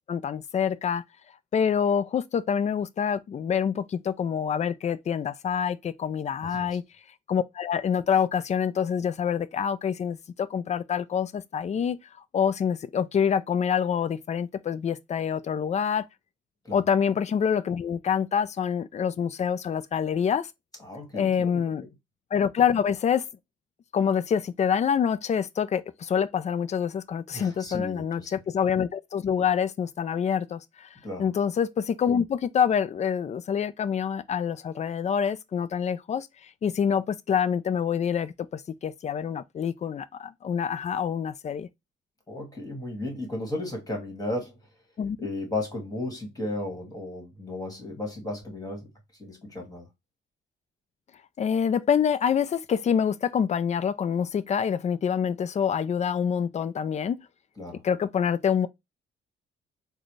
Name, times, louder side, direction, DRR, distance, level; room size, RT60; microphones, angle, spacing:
voice 1, 0.1-1.0 1.5-6.8 7.3-12.0 12.3-16.1 16.7-20.5 21.1-21.8 22.3-23.2 23.9-30.9 31.2-36.3 36.6-41.7 45.0-45.2 51.4-57.3 57.8-58.7, left 7 dB, 35° left, 0.4 m, -26 dB
voice 2, 20.8-21.6 27.3-28.3 31.0-31.3 42.3-44.6 45.2-48.9 49.2-49.9 57.6-57.8, left 1 dB, 20° left, 1.9 m, -34 dB
3.9 x 2.3 x 3.1 m
cardioid pair, 90°, 20 cm